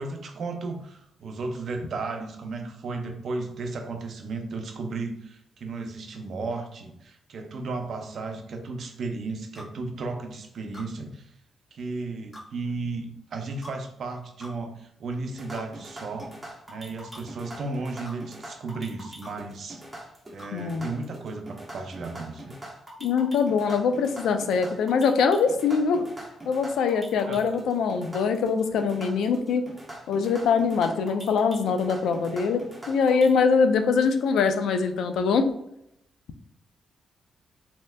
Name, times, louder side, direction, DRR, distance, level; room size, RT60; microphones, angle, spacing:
voice 1, 0.0-11.3 11.7-16.3 16.7-19.8 20.3-22.5 27.3-27.6, right 3 dB, 65° right, 4 dB, 0.5 m, -34 dB
sound 1, 9.5-9.7 10.7-10.9 12.3-12.5 13.6-13.8 14.4-14.6 15.5-15.7 16.2-16.4 17.1-17.2 18.0-18.2 19.2-19.4 20.4-20.5, left 1 dB, 35° left, 1.4 m, -44 dB
sound 2, 15.3-33.3, right 1 dB, 15° right, 1.0 m, -43 dB
voice 2, 20.5-20.9 23.0-26.1 26.5-29.6 30.1-35.5, left 5 dB, 85° left, 7 dB, 0.3 m, -23 dB
3.2 x 2.8 x 2.2 m, 0.78 s
cardioid pair, 95°, 0 cm